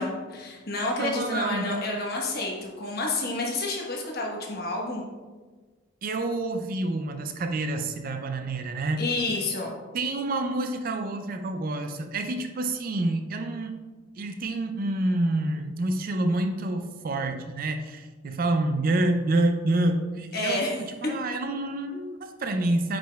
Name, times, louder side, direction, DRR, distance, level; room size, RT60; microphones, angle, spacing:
voice 1, 0.0-5.0 9.0-9.7 20.3-20.8, left 2 dB, 45° left, -1 dB, 1.1 m, -29 dB
voice 2, 1.0-1.8 6.0-9.0 9.9-13.8 14.2-23.0, right 2 dB, 45° right, 7 dB, 0.4 m, -28 dB
8.9 x 5.0 x 2.3 m, 1.4 s
head